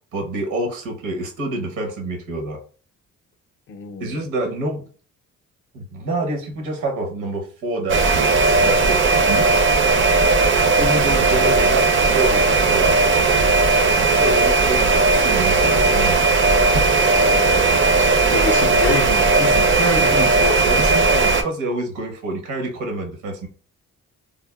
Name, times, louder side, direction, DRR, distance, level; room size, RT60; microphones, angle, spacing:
voice 1, 0.1-2.6 4.0-4.8 5.7-9.5 10.8-13.0 14.0-16.2 19.4-23.5, right 2 dB, 80° right, 0.9 m, -27 dB
voice 2, 3.7-4.2 17.1-17.7 18.0-19.3 20.0-20.1, left 5 dB, 40° left, 0.4 m, -28 dB
sound 1, 7.9-21.4, right 3 dB, 40° right, 0.5 m, -17 dB
3.4 x 2.0 x 2.2 m
cardioid pair, 90°, 30 cm